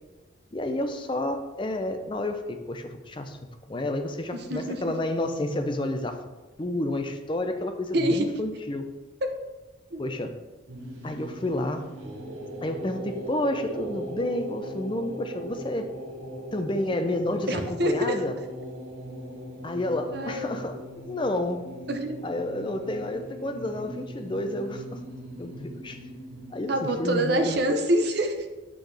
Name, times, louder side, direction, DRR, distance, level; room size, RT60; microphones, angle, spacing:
voice 1, 0.5-3.4 3.7-6.2 6.6-8.8 10.0-10.4 11.0-11.9 12.6-15.9 16.5-18.4 19.6-20.8 21.1-21.7 22.2-25.0 25.4-26.0 26.5-27.6, left 1 dB, 25° left, 6 dB, 0.5 m, -30 dB
voice 2, 4.3-4.9 7.9-8.3 9.2-9.3 9.9-10.0 17.5-18.2 20.1-20.6 21.9-22.2 26.7-28.4, right 1 dB, 55° right, 5 dB, 0.8 m, -26 dB
sound 1, 10.7-26.9, equal, 80° right, 1.3 m, -39 dB
8.0 x 6.1 x 3.4 m, 1.2 s
head